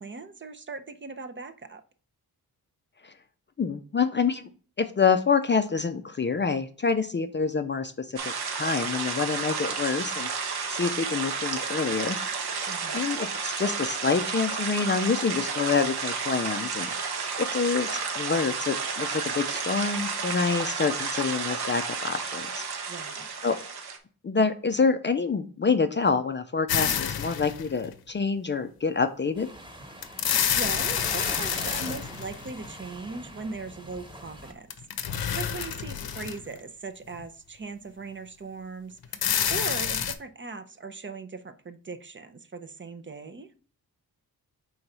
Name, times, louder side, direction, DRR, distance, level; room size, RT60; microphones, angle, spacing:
voice 1, 0.0-1.8 12.7-13.1 22.9-23.3 30.2-34.7 35.0-39.2 39.5-43.5, right 4 dB, 30° right, 9 dB, 0.5 m, -39 dB
voice 2, 3.6-4.5 4.8-8.2 8.6-10.3 10.7-12.2 12.9-16.9 17.4-22.6 23.4-23.6 24.2-29.5, left 5 dB, 30° left, 8 dB, 0.4 m, -27 dB
sound 1, 8.2-24.0, right 5 dB, 85° right, 1.1 m, -31 dB
sound 2, 26.7-27.9 30.0-32.7 34.7-36.6 37.1-37.2 39.0-40.1, left 8 dB, 70° left, 0.7 m, -28 dB
sound 3, 29.3-34.5, equal, 10° right, 1.2 m, -42 dB
4.6 x 3.9 x 5.4 m, 0.40 s
wide cardioid pair, 135°, 37 cm